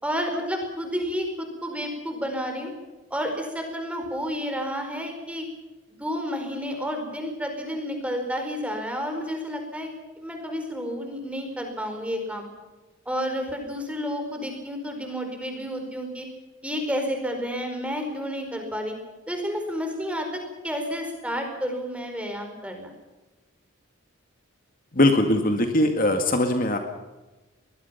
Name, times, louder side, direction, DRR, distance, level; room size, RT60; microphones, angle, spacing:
voice 1, 0.0-2.7 3.1-5.4 5.9-12.4 13.0-16.3 16.6-18.9 19.3-20.3 20.6-22.9, equal, 5° right, 4 dB, 4.7 m, -30 dB
voice 2, 24.9-26.8, left 1 dB, 40° left, 5 dB, 2.0 m, -21 dB
23.5 x 20.5 x 5.8 m, 1.1 s
head